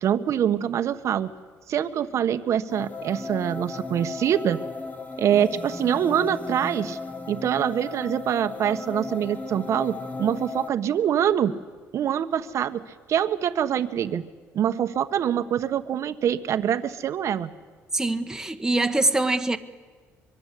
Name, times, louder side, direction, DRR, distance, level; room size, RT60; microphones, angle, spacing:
voice 1, 0.0-1.3 1.7-4.6 5.2-7.0 7.3-11.6 11.9-12.8 13.1-14.3 14.5-17.5, right 9 dB, 60° right, 1.3 m, -24 dB
sound 1, 2.7-10.7, left 3 dB, 25° left, 1.7 m, -35 dB
voice 2, 17.9-19.6, right 2 dB, 10° right, 1.5 m, -23 dB
24.0 x 23.0 x 8.5 m
cardioid pair, 100°, 6 cm